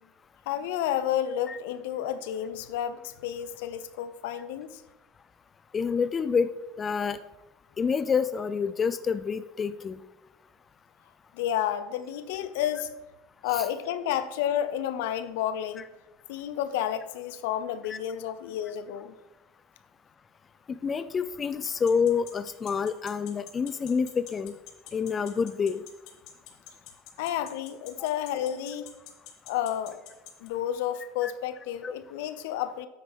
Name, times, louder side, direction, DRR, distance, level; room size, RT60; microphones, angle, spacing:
voice 1, 0.5-4.8 11.3-12.9 13.4-15.9 16.3-19.1 27.2-28.9 29.5-30.0 30.4-32.9, left 10 dB, 80° left, 12 dB, 0.7 m, -31 dB
voice 2, 5.7-6.5 6.8-7.2 7.8-10.0 13.5-13.6 17.9-18.0 20.8-24.5 24.9-25.8 31.2-31.3 31.8-31.9, left 6 dB, 25° left, 12 dB, 0.4 m, -27 dB
sound 1, 21.7-30.5, left 12 dB, 60° left, 1.7 m, -45 dB
9.5 x 7.8 x 3.6 m, 1.0 s
supercardioid pair, 130°, 0 cm